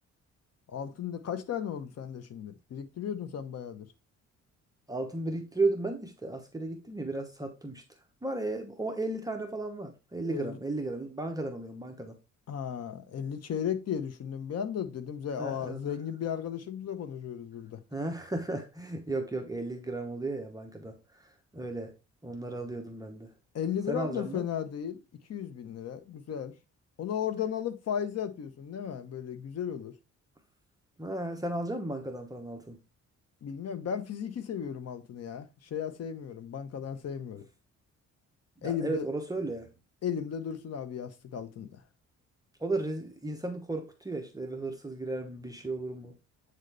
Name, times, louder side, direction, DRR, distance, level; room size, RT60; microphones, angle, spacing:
voice 1, 0.7-3.9 10.3-10.6 12.5-17.8 23.5-25.0 25.3-26.5 27.0-30.0 33.4-37.4 38.6-39.1 40.0-41.8, left 8 dB, 60° left, 1.1 m, -35 dB
voice 2, 4.9-7.8 8.2-12.2 15.4-15.8 17.9-21.2 21.5-21.9 22.2-23.3 23.9-24.5 31.0-32.8 38.6-39.7 42.6-46.1, right 2 dB, 10° right, 1.0 m, -34 dB
8.1 x 4.0 x 3.4 m
cardioid pair, 105°, 29 cm